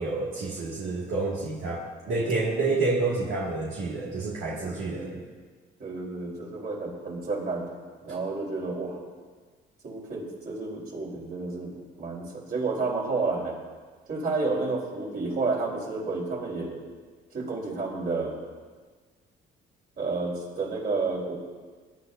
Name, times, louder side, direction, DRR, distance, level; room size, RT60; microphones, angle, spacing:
voice 1, 0.0-5.2, right 3 dB, 85° right, -6 dB, 2.2 m, -29 dB
voice 2, 4.6-5.1 5.8-7.7 8.0-9.0 9.8-13.6 14.1-16.8 17.3-18.4 20.0-21.3, right 3 dB, 50° right, -3 dB, 4.0 m, -31 dB
21.0 x 11.0 x 2.7 m, 1.5 s
cardioid pair, 90°, 20 cm